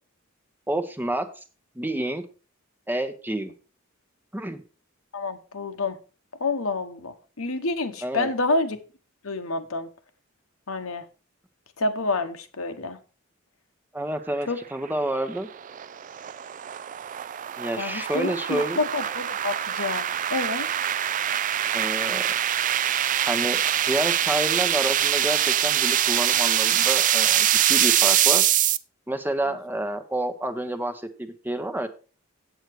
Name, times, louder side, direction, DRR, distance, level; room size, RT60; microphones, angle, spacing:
voice 1, 0.7-1.3 1.8-2.2 2.9-3.5 4.3-4.6 8.0-8.3 13.9-15.5 17.6-18.8 21.7-22.3 23.2-28.4 29.1-31.9, right 1 dB, 10° right, 9 dB, 0.8 m, -29 dB
voice 2, 5.1-6.0 6.4-8.8 9.2-9.9 10.7-11.1 11.8-13.0 14.5-14.6 17.8-20.7 29.5-29.6, left 3 dB, 80° left, 8 dB, 1.1 m, -28 dB
sound 1, 14.8-28.8, right 11 dB, 40° right, 0.4 m, -24 dB
8.1 x 8.0 x 4.7 m, 0.36 s
head